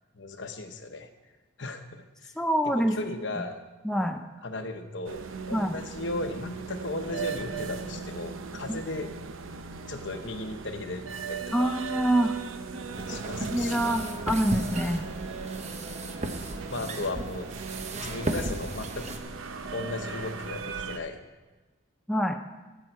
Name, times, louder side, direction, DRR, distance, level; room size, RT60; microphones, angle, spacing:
voice 1, 0.1-1.1 1.6-2.3 2.7-3.6 4.4-9.1 9.9-11.7 13.1-14.0 16.7-17.5 18.0-19.1 19.7-21.3, left 2 dB, 65° left, 7 dB, 0.9 m, -36 dB
voice 2, 2.4-3.0 3.8-4.2 5.5-5.8 8.7-8.8 11.5-12.4 13.4-15.1 22.1-22.4, equal, 5° left, 4 dB, 0.5 m, -26 dB
sound 1, 5.1-21.0, right 5 dB, 80° right, 0.7 m, -38 dB
sound 2, 12.9-19.2, right 2 dB, 35° right, 0.8 m, -35 dB
16.0 x 8.0 x 4.6 m, 1.2 s
head